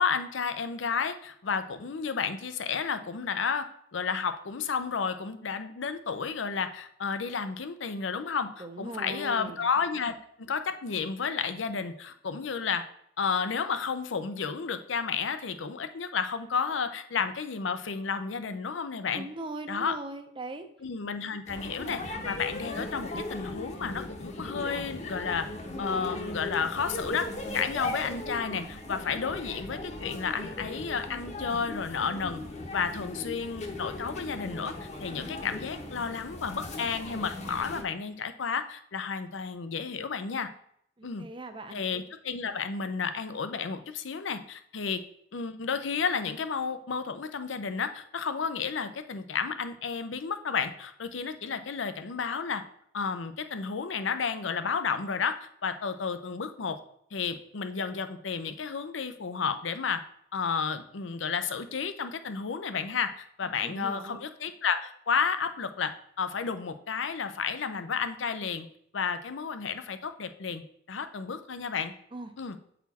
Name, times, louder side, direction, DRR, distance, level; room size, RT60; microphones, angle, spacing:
voice 1, 0.0-10.1 10.5-12.9 13.2-19.3 19.7-20.0 20.8-25.5 25.8-27.3 27.5-32.4 32.7-40.5 41.0-41.3 41.7-45.0 45.3-52.6 52.9-56.8 57.1-60.0 60.3-68.7 68.9-70.6 70.9-71.9 72.4-72.6, left 6 dB, 80° left, 10 dB, 0.6 m, -32 dB
voice 2, 8.6-9.7 19.1-20.7 41.0-41.8 63.6-64.2 72.1-72.3, right 2 dB, 25° right, 8 dB, 0.6 m, -39 dB
sound 1, 21.5-37.8, left 2 dB, 40° left, 0.9 m, -38 dB
8.2 x 4.2 x 4.1 m, 0.69 s
head